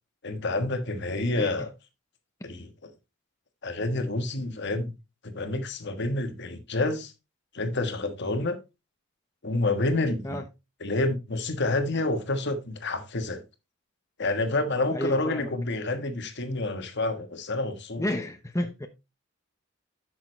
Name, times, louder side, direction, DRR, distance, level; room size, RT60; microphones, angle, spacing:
voice 1, 0.2-1.7 2.4-2.7 3.6-4.9 5.2-7.1 7.5-8.6 9.4-10.4 10.8-13.4 14.2-18.0, left 2 dB, 55° left, 1.4 m, -28 dB
voice 2, 14.9-15.6 18.0-18.9, left 1 dB, 15° left, 0.8 m, -31 dB
10.5 x 6.2 x 3.2 m
head